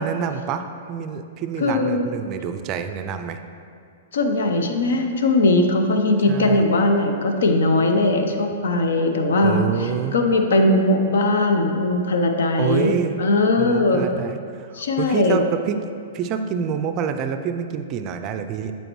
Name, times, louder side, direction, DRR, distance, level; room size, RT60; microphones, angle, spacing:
voice 1, 0.0-3.4 6.3-6.6 9.4-10.2 12.6-13.2 13.6-15.8 16.1-18.7, right 8 dB, 35° right, 8 dB, 0.4 m, -27 dB
voice 2, 1.6-2.1 4.1-12.9 13.2-14.1 14.7-15.4, left 2 dB, 75° left, 4 dB, 0.6 m, -19 dB
7.7 x 4.4 x 3.1 m, 2.3 s
hypercardioid pair, 125°, 0 cm